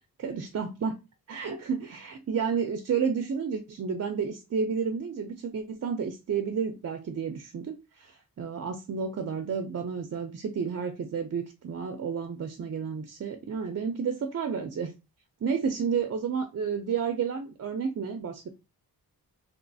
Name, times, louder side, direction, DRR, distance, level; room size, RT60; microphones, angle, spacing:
voice 1, 0.2-1.0 1.3-14.9 15.4-18.5, right 6 dB, 45° right, 0.4 m, -31 dB
3.0 x 3.0 x 2.6 m
wide cardioid pair, 90°, 39 cm